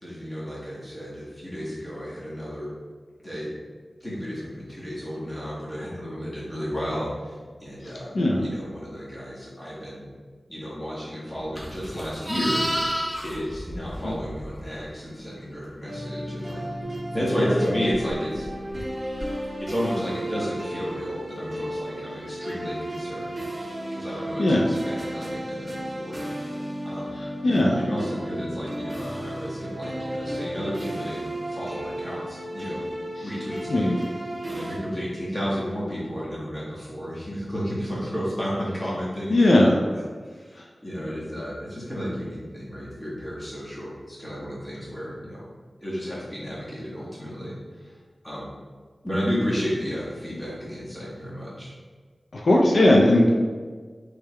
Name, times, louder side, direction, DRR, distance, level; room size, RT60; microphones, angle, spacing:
voice 1, 0.0-2.7 3.2-3.5 4.0-8.1 8.4-10.0 10.5-12.6 13.2-16.7 17.1-18.6 19.6-23.4 23.9-26.2 26.8-27.2 27.8-32.9 33.2-34.1 34.5-45.4 45.8-47.9 48.2-48.4 49.0-51.7, equal, 20° left, -8 dB, 1.5 m, -32 dB
voice 2, 7.8-8.4 14.0-14.1 24.4-24.7 27.2-27.8 33.2-33.3 33.7-34.0 39.3-39.7 52.3-53.3, left 1 dB, 75° left, -2 dB, 0.4 m, -19 dB
sound 1, 11.5-12.3 12.7-12.8 13.1-13.6 13.9-14.4 14.7-15.3 15.6-15.7 16.0-16.1 16.6-16.8 17.3-19.6, equal, 45° left, 0.9 m, -34 dB
Livestock farm animals working animals, 11.5-14.8 19.2-19.4, equal, 5° right, 0.6 m, -30 dB
sound 2, 15.9-34.8, right 1 dB, 35° right, 0.8 m, -33 dB
3.5 x 3.3 x 3.3 m, 1.5 s
wide cardioid pair, 75°, 0 cm